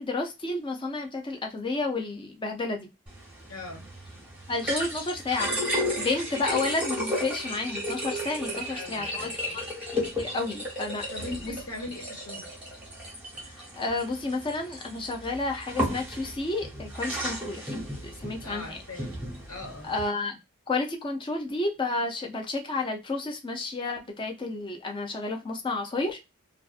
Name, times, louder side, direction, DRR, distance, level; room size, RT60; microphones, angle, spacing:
voice 1, 0.0-2.9 4.5-5.6 6.0-9.6 10.2-11.0 11.4-11.5 13.8-18.8 19.9-20.4 20.7-26.2, left 3 dB, 20° left, 3 dB, 0.5 m, -31 dB
sound 1, 3.1-20.1, equal, 5° right, 0.9 m, -34 dB
voice 2, 3.5-3.9 8.5-9.3 11.1-12.6 18.4-19.1 19.5-19.9, left 2 dB, 85° left, 0 dB, 1.3 m, -40 dB
2.5 x 2.4 x 2.4 m, 0.24 s
head